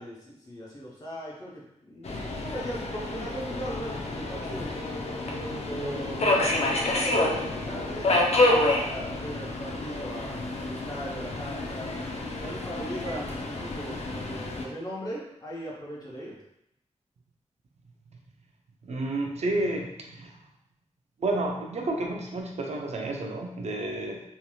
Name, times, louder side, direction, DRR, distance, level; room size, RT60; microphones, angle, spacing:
voice 1, 0.0-4.8 5.7-11.9 12.4-16.4, equal, 30° left, -5 dB, 0.8 m, -39 dB
Subway metro underground, 2.0-14.7, left 2 dB, 65° left, 0.4 m, -28 dB
voice 2, 18.8-20.3 21.2-24.2, right 2 dB, 65° right, 1 dB, 0.4 m, -30 dB
3.1 x 2.7 x 2.3 m, 0.82 s
wide cardioid pair, 140°, 12 cm